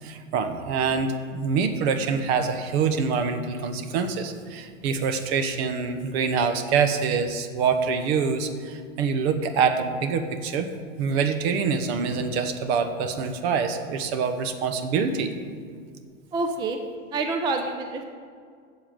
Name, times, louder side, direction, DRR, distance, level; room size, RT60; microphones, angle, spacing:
voice 1, 0.0-10.7 11.0-15.3, right 5 dB, 50° right, 8 dB, 1.2 m, -25 dB
voice 2, 16.3-16.8 17.1-18.0, right 3 dB, 10° right, 4 dB, 0.5 m, -27 dB
8.6 x 7.1 x 7.7 m, 2.1 s
supercardioid pair, 140°, 40 cm